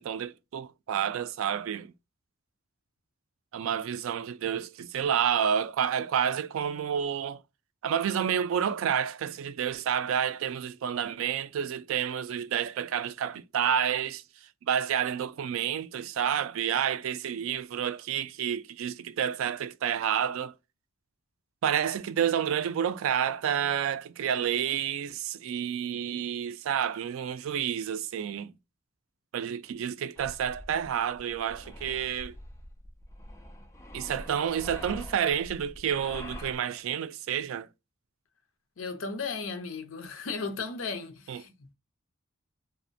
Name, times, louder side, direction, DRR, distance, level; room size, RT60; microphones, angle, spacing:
voice 1, 0.0-1.9 3.5-7.4 7.8-14.2 14.7-20.5 21.6-28.5 29.3-32.3 33.9-37.7 41.3-41.4, right 8 dB, 75° right, 0.3 m, -29 dB
sound 1, 30.2-36.6, left 1 dB, 15° left, 0.3 m, -44 dB
voice 2, 38.8-41.7, left 4 dB, 70° left, 0.6 m, -35 dB
2.4 x 2.0 x 2.6 m
head